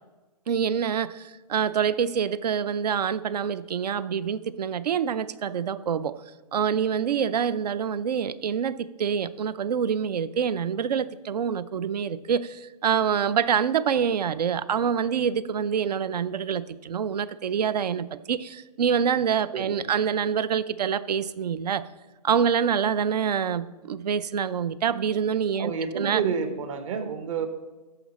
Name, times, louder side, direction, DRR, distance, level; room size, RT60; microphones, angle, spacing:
voice 1, 0.5-6.2 6.5-21.8 22.2-26.2, right 7 dB, 75° right, 17 dB, 0.5 m, -26 dB
voice 2, 25.6-27.5, right 6 dB, 50° right, 9 dB, 1.1 m, -29 dB
13.5 x 5.0 x 4.2 m, 1.2 s
hypercardioid pair, 145°, 21 cm